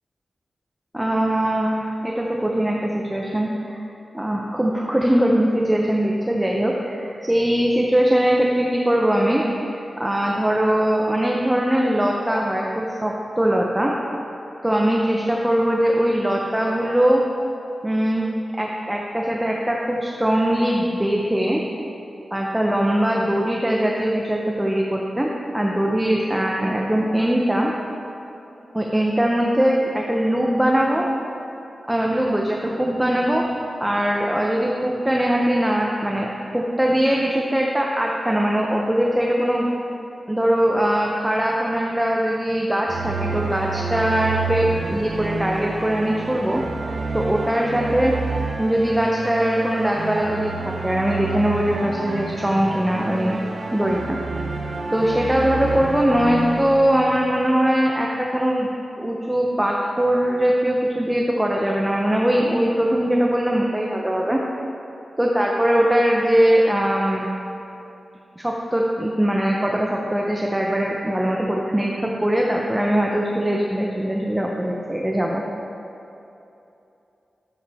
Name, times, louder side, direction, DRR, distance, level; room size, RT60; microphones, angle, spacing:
voice 1, 0.9-3.8 4.1-9.4 9.7-14.0 14.6-17.2 17.8-18.3 18.6-21.6 22.3-27.7 28.7-31.1 31.9-39.7 40.3-48.1 48.6-53.4 53.7-54.2 54.9-58.7 59.0-64.4 65.2-67.3 68.4-75.4, right 1 dB, 10° right, -2 dB, 0.6 m, -21 dB
sound 1, 42.9-57.4, right 4 dB, 60° right, 0.8 m, -29 dB
11.5 x 7.1 x 3.4 m, 2.9 s
wide cardioid pair, 125°, 0 cm